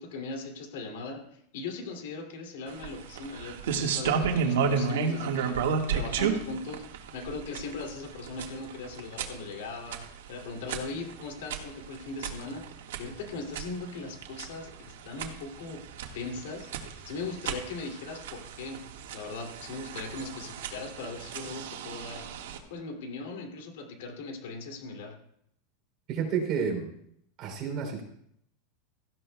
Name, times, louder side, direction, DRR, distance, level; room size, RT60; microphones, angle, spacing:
voice 1, 0.0-5.6 5.9-6.9 7.1-12.7 13.0-14.7 15.0-15.8 16.1-16.7 17.0-18.8 19.1-22.3 22.7-25.2, left 3 dB, 70° left, 3 dB, 2.6 m, -39 dB
sound 1, 2.7-22.6, right 6 dB, 90° right, 1.6 m, -33 dB
voice 2, 26.1-26.9 27.4-28.0, right 6 dB, 35° right, 2 dB, 3.2 m, -30 dB
17.0 x 14.0 x 2.3 m, 0.72 s
supercardioid pair, 160°, 0 cm